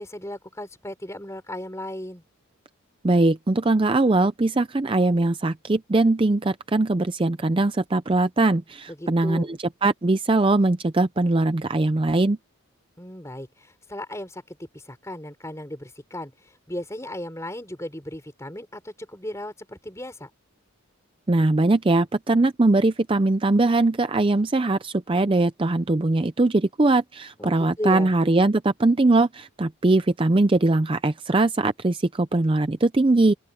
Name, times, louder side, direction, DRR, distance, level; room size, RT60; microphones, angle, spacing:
voice 1, 0.0-2.2 9.0-9.5 13.0-20.3 27.4-28.1, left 1 dB, 15° left, 4.7 m, -35 dB
voice 2, 3.0-12.4 21.3-33.3, right 2 dB, 25° right, 0.5 m, -21 dB
open air
head